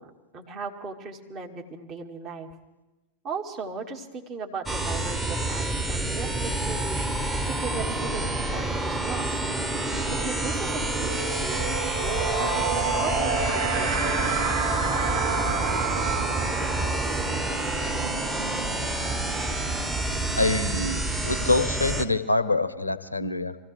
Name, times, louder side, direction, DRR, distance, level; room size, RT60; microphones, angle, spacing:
voice 1, 0.0-2.5 3.2-9.4 10.1-14.3 14.8-14.9, right 4 dB, 35° right, 1 dB, 2.0 m, -37 dB
sound 1, 4.7-22.1, right 2 dB, 10° right, 1.1 m, -28 dB
sound 2, 9.3-9.4 9.7-20.3, right 4 dB, 65° right, 2.1 m, -30 dB
voice 2, 20.4-23.6, left 3 dB, 85° left, 14 dB, 0.7 m, -25 dB
25.5 x 15.0 x 3.4 m, 1.1 s
figure-of-eight pair, 90°, 0 cm